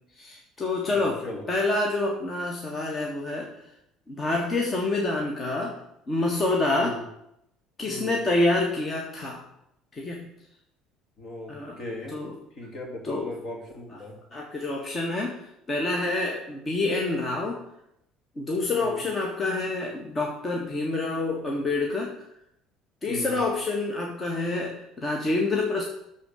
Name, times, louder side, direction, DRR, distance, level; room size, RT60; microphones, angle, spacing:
voice 1, 0.2-1.2 1.5-3.5 4.1-5.8 6.1-7.0 7.8-9.4 9.9-10.3 11.5-11.8 12.1-12.3 13.0-13.3 14.3-17.6 18.4-22.1 23.0-25.8, left 2 dB, 35° left, 0 dB, 1.7 m, -27 dB
voice 2, 0.8-1.5 6.7-7.0 7.8-8.2 11.2-12.2 12.5-14.2 18.7-19.1 23.1-23.4, left 1 dB, 55° left, 1 dB, 2.8 m, -38 dB
12.0 x 4.3 x 6.5 m, 0.79 s
hypercardioid pair, 70°, 0 cm